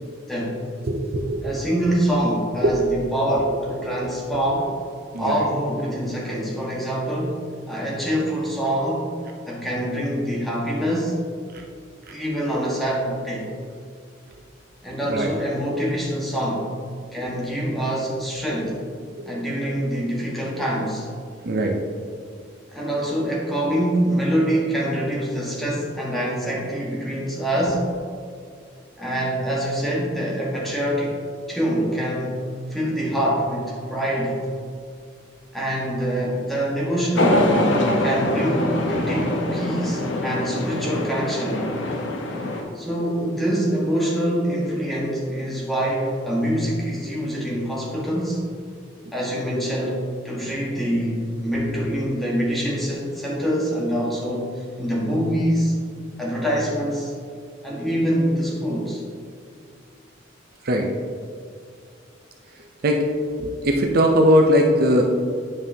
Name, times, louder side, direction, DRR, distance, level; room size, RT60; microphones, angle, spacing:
voice 1, 0.3-0.6 1.4-4.7 5.2-7.4 7.7-9.1 9.5-11.2 12.1-13.5 14.8-16.6 17.1-18.8 19.3-21.1 22.7-27.9 29.0-31.2 31.5-34.4 35.5-37.4 38.0-41.7 42.7-48.4 49.1-55.7 56.2-57.1 57.6-59.0, equal, ahead, -5 dB, 1.4 m, -25 dB
voice 2, 0.8-1.5 2.6-2.8 3.8-4.0 5.1-5.5 11.5-11.6 12.1-12.2 15.1-15.3 19.2-19.3 21.4-21.8 51.5-51.6 60.6-60.9 62.8-63.1 63.4-65.0, equal, 50° right, 2 dB, 0.5 m, -20 dB
sound 1, 37.2-42.6, left 1 dB, 70° left, 0.9 m, -23 dB
9.5 x 5.4 x 2.8 m, 2.2 s
head